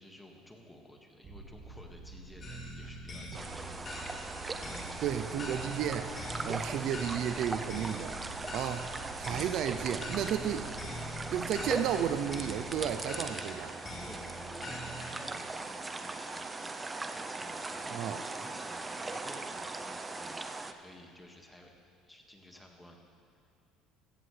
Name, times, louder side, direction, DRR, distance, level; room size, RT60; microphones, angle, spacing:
voice 1, 0.0-3.5 14.0-21.7 22.1-23.1, left 1 dB, 10° left, 1 dB, 1.9 m, -53 dB
sound 1, 1.2-14.6, right 2 dB, 40° right, 2.4 m, -49 dB
sound 2, 2.4-15.1, equal, 35° left, 3.3 m, -44 dB
sound 3, 3.3-20.7, right 3 dB, 20° right, 0.7 m, -40 dB
voice 2, 5.0-8.2 8.5-8.9 9.2-10.7 11.3-13.7 17.9-18.2, right 9 dB, 60° right, 9 dB, 0.6 m, -33 dB
16.0 x 14.0 x 3.4 m, 2.6 s
supercardioid pair, 90°, 0 cm